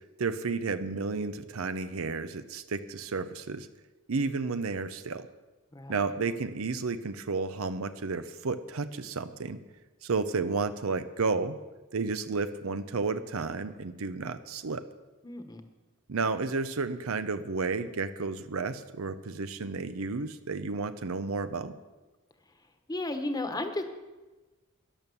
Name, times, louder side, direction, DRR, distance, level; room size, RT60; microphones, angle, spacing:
voice 1, 0.2-3.7 4.1-5.3 5.9-9.6 10.0-11.6 11.9-14.8 16.1-21.7, right 4 dB, 85° right, 11 dB, 0.7 m, -32 dB
voice 2, 15.2-15.6 22.9-23.8, left 2 dB, 20° left, 7 dB, 1.2 m, -33 dB
12.5 x 11.0 x 7.1 m, 1.2 s
head